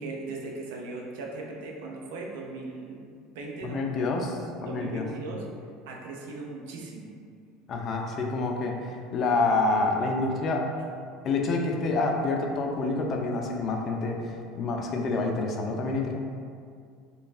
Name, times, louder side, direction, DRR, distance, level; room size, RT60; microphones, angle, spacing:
voice 1, 0.0-3.9 4.6-5.4 5.9-7.1, right 3 dB, 65° right, 0 dB, 0.4 m, -38 dB
voice 2, 3.6-5.1 7.7-10.6 11.2-16.1, left 3 dB, 40° left, 2 dB, 0.3 m, -28 dB
3.1 x 2.3 x 2.4 m, 2.2 s
figure-of-eight pair, 70°, 0 cm